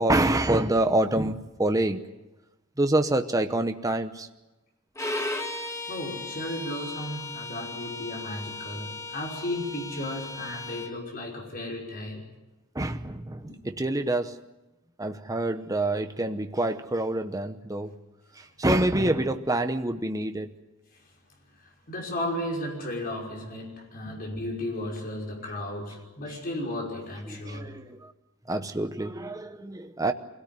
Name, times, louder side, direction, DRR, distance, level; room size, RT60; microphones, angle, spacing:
voice 1, 0.0-2.0 2.8-4.3 12.7-14.4 15.0-18.0 18.3-20.5 27.3-28.1 28.5-30.1, right 1 dB, 15° right, 7 dB, 0.9 m, -26 dB
Bowed string instrument, 5.0-10.9, left 2 dB, 15° left, 1.7 m, -36 dB
voice 2, 5.9-12.3 13.4-13.6 20.9-21.0 21.6-27.7, left 1 dB, 40° left, 0 dB, 5.7 m, -34 dB
24.5 x 17.5 x 9.4 m, 1.0 s
head